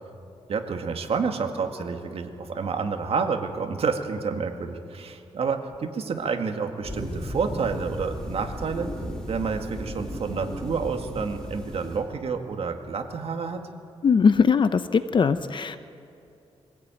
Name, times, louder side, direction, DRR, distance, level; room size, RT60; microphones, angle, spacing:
voice 1, 0.5-8.9 9.3-13.6, right 5 dB, 60° right, 5 dB, 2.0 m, -29 dB
sound 1, 6.8-12.0, equal, 5° left, 4.3 m, -35 dB
voice 2, 14.0-15.8, left 5 dB, 45° left, 11 dB, 0.7 m, -20 dB
24.0 x 16.5 x 9.1 m, 2.7 s
wide cardioid pair, 150°, 11 cm